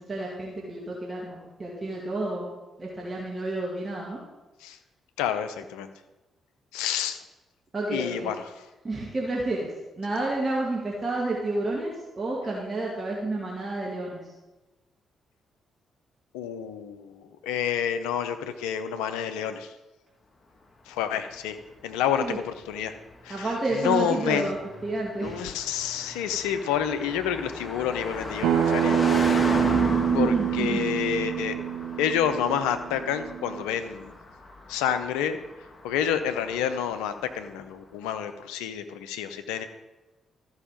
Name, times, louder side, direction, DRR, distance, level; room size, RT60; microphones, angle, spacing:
voice 1, 0.0-2.5 2.8-4.2 7.7-8.3 8.8-14.2 22.2-22.4 23.3-24.6 24.8-25.4 29.6-30.9, right 2 dB, 35° right, -3 dB, 2.3 m, -30 dB
voice 2, 5.2-5.9 6.7-7.2 7.9-8.4 16.3-19.7 20.9-21.6 21.8-22.9 23.2-24.5 25.2-29.0 30.1-31.6 32.0-34.1 34.7-35.4 35.8-39.7, left 8 dB, 75° left, 9 dB, 0.7 m, -29 dB
Car passing by, 21.1-37.5, left 2 dB, 30° left, 1.7 m, -36 dB
Acoustic guitar, 28.4-33.6, right 10 dB, 70° right, 0.4 m, -26 dB
13.5 x 5.6 x 5.2 m, 1.1 s
figure-of-eight pair, 40°, 0 cm